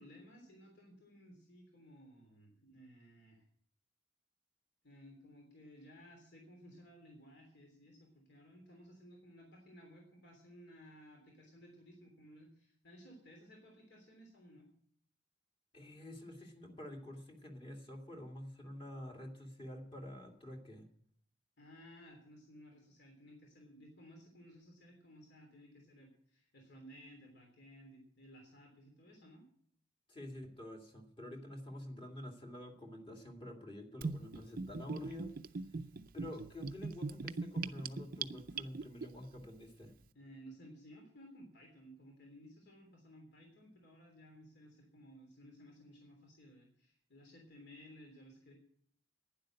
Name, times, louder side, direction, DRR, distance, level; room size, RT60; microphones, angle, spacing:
voice 1, 0.0-3.4 4.8-14.7 21.6-29.5 40.1-48.5, equal, 60° left, 1 dB, 3.3 m, -57 dB
voice 2, 15.7-20.9 30.1-35.3 36.1-39.9, left 1 dB, 25° left, 2 dB, 2.4 m, -48 dB
Gurgling / Bathtub (filling or washing), 34.0-39.1, right 4 dB, 50° right, 0.5 m, -40 dB
11.5 x 10.5 x 7.7 m, 0.62 s
head